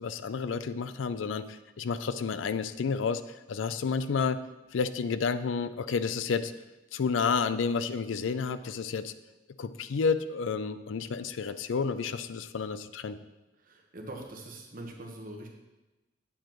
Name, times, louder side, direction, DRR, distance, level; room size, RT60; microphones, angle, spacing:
voice 1, 0.0-3.2 3.5-4.4 4.7-6.5 6.9-9.1 9.6-13.2, left 5 dB, 80° left, 13 dB, 0.4 m, -30 dB
voice 2, 13.6-15.5, right 1 dB, 45° right, 1 dB, 1.2 m, -43 dB
8.9 x 7.6 x 3.0 m, 1.1 s
head